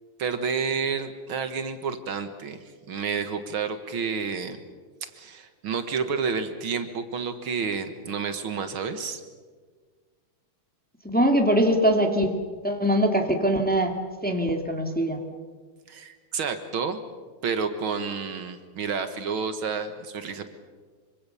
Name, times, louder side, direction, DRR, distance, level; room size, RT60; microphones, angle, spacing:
voice 1, 0.2-4.6 5.1-9.2 15.9-17.0 17.4-20.5, right 5 dB, 70° right, 9 dB, 2.3 m, -30 dB
voice 2, 11.0-12.4 12.6-13.9 14.2-15.2, equal, 5° left, 4 dB, 2.1 m, -22 dB
26.0 x 24.5 x 7.0 m, 1.5 s
omnidirectional pair, 2.4 m